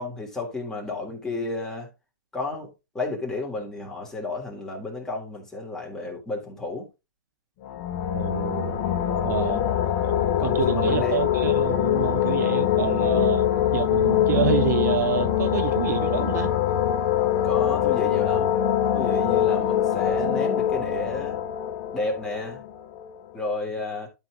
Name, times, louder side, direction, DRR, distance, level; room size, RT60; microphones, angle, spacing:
voice 1, 0.0-1.9 2.3-6.9 9.3-9.7 10.4-11.2 13.1-13.2 17.4-18.5 18.9-21.4 21.9-22.6 23.3-24.1, left 2 dB, 5° left, 3.2 m, -32 dB
sound 1, 7.6-23.2, left 10 dB, 40° left, 1.4 m, -23 dB
voice 2, 8.1-8.8 9.2-9.6 10.0-10.2 10.4-16.5, right 11 dB, 65° right, 0.7 m, -28 dB
12.0 x 4.7 x 3.8 m
hypercardioid pair, 140°, 10 cm